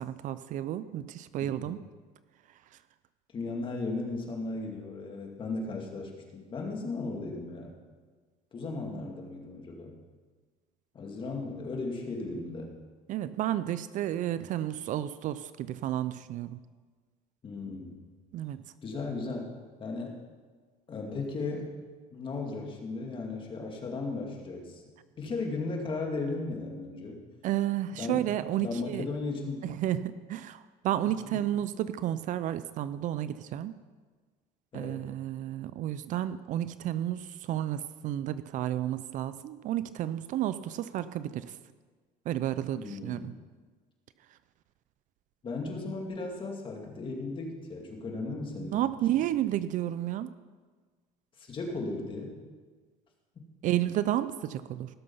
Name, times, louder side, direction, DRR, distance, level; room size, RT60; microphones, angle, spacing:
voice 1, 0.0-1.8 13.1-16.6 18.3-18.6 27.4-29.0 29.6-33.7 34.7-41.5 42.3-43.3 48.7-50.3 53.6-54.9, right 12 dB, 55° right, 14 dB, 0.5 m, -31 dB
voice 2, 1.4-1.8 3.3-7.7 8.5-9.9 10.9-12.8 17.4-18.0 18.8-19.5 19.8-20.2 20.9-21.7 22.1-24.8 25.2-27.2 28.0-28.3 28.6-29.8 31.3-31.4 34.7-35.0 42.8-43.4 45.4-48.8 49.1-49.2 51.4-52.3, left 3 dB, 30° left, 1 dB, 2.4 m, -36 dB
17.0 x 6.9 x 5.5 m, 1.4 s
cardioid pair, 125°, 16 cm